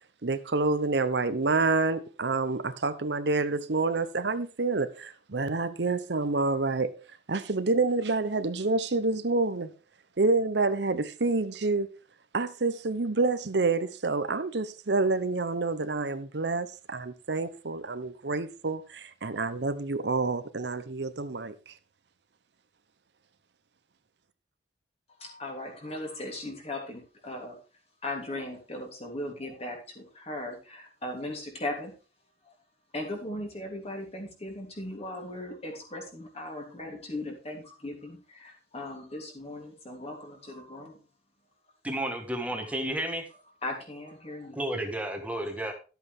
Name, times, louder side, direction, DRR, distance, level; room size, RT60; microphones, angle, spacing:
voice 1, 0.2-6.9 7.3-9.7 10.2-11.9 12.3-21.6, right 3 dB, 70° right, 0.9 m, -28 dB
voice 2, 25.2-27.6 28.0-31.9 32.9-41.0 43.6-44.6, left 1 dB, 35° left, 3.3 m, -38 dB
voice 3, 41.8-43.2 44.5-45.7, right 1 dB, 10° right, 1.5 m, -32 dB
12.0 x 8.1 x 3.6 m
head